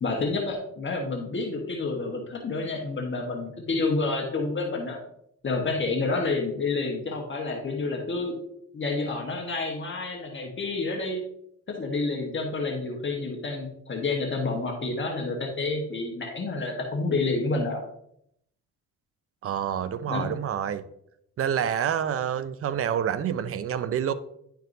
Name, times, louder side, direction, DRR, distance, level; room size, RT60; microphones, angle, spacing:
voice 1, 0.0-5.0 5.4-8.3 8.7-11.2 11.7-17.8 20.1-20.3, left 3 dB, 40° left, 1 dB, 1.3 m, -29 dB
voice 2, 19.4-20.8 21.4-24.1, right 9 dB, 50° right, 14 dB, 0.5 m, -27 dB
10.5 x 4.6 x 2.7 m, 0.75 s
cardioid pair, 90°, 30 cm